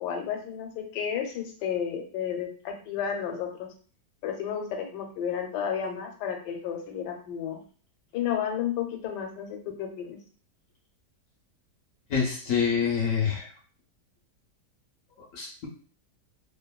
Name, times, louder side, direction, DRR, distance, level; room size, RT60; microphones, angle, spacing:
voice 1, 0.0-3.7 4.2-7.6 8.1-10.2, left 8 dB, 80° left, 4 dB, 1.2 m, -32 dB
voice 2, 12.1-13.5 15.3-15.7, left 6 dB, 65° left, -1 dB, 0.8 m, -26 dB
2.8 x 2.5 x 2.2 m, 0.42 s
omnidirectional pair, 1.8 m